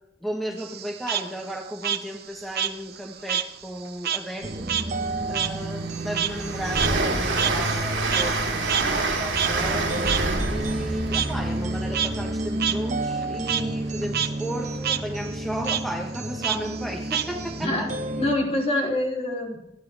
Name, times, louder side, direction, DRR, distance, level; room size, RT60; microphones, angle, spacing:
voice 1, 0.2-4.7 5.3-10.0 10.5-17.9, right 1 dB, ahead, 0 dB, 1.5 m, -34 dB
Frog, 0.6-3.5 3.8-8.4 8.7-8.8 9.3-9.5 10.1-10.2 11.1-11.3 11.8-12.1 12.6-12.7 13.1-13.6 14.0-14.3 14.6-15.0 15.6-15.8 16.4-17.6, right 9 dB, 55° right, 1.0 m, -27 dB
sound 1, 4.4-18.4, right 1 dB, 40° right, 1.4 m, -31 dB
Train, 4.6-4.7 5.1-12.9, right 3 dB, 75° right, 4.2 m, -28 dB
voice 2, 18.2-19.6, left 1 dB, 35° left, -1 dB, 3.7 m, -25 dB
28.5 x 10.5 x 3.6 m, 0.88 s
head